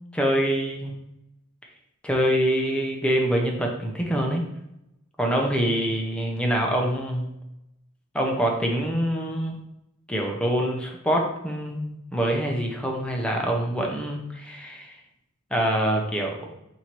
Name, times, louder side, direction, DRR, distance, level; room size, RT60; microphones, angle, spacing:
voice 1, 0.1-0.9 2.0-4.4 5.2-7.3 8.1-9.6 10.1-15.0 15.5-16.5, equal, 5° left, 0 dB, 0.6 m, -25 dB
4.4 x 2.7 x 4.5 m, 0.84 s
head